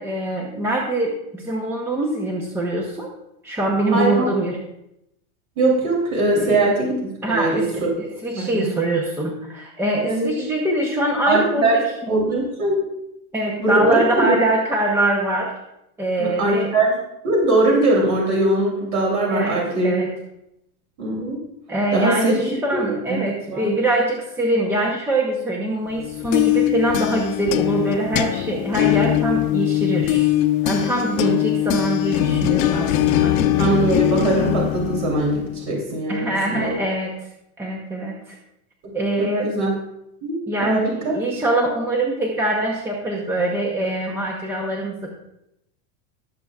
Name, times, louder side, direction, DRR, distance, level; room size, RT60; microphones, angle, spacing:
voice 1, 0.0-3.1 3.4-4.6 6.4-6.6 7.2-7.7 8.0-11.8 13.3-15.5 16.0-16.7 19.3-20.1 21.7-30.2 30.6-33.4 36.1-37.1 37.6-38.4 38.9-39.5 40.5-45.1, right 1 dB, 5° right, -1 dB, 0.8 m, -23 dB
voice 2, 3.9-4.3 5.6-7.9 8.3-8.6 10.0-10.3 11.3-11.8 12.1-12.8 13.6-14.3 16.2-17.0 17.2-19.9 21.0-21.4 21.9-22.8 23.1-23.2 23.5-23.7 31.2-31.3 33.6-36.8 38.8-38.9 39.2-39.7 40.2-41.2, right 2 dB, 50° right, -3 dB, 3.2 m, -21 dB
sound 1, 26.0-35.6, left 13 dB, 60° left, 1.0 m, -21 dB
19.0 x 6.9 x 2.4 m, 0.83 s
supercardioid pair, 150°, 46 cm